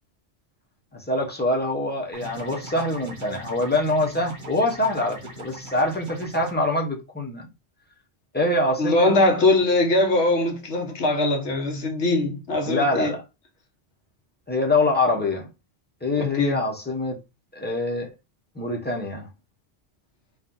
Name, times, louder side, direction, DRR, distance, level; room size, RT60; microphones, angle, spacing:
voice 1, 0.9-7.5 8.3-9.1 12.7-13.2 14.5-15.5 16.0-17.2 17.5-18.1 18.5-19.3, left 2 dB, 10° left, 0.8 m, -24 dB
sound 1, 2.1-6.5, right 1 dB, 70° right, 1.7 m, -40 dB
voice 2, 8.8-13.1 16.2-16.6, left 2 dB, 85° left, 1.4 m, -21 dB
4.5 x 2.4 x 3.8 m
omnidirectional pair, 1.1 m